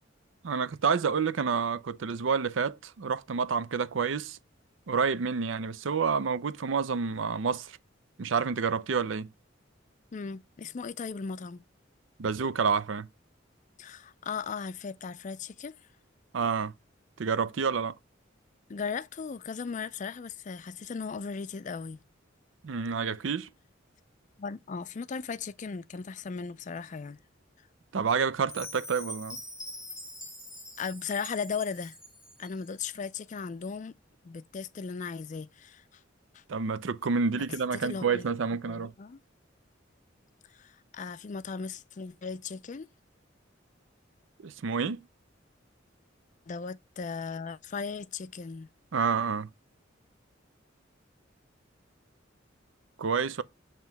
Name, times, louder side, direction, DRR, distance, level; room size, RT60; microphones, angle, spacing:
voice 1, 0.4-4.4 4.9-7.8 8.2-9.3 12.2-13.1 16.3-16.7 17.2-18.0 22.6-23.5 27.9-29.4 36.5-38.9 44.4-45.1 48.9-49.5 53.0-53.4, right 5 dB, 80° right, 0.5 m, -29 dB
voice 2, 10.1-11.6 13.8-15.8 18.7-22.0 24.4-27.2 30.8-32.0 32.4-33.9 34.2-36.0 36.3-36.4 37.7-38.3 38.7-39.2 40.5-42.9 46.5-48.7, left 5 dB, 40° left, 0.4 m, -37 dB
Chime, 28.5-32.6, left 1 dB, 5° right, 1.7 m, -44 dB
7.6 x 3.0 x 5.7 m
head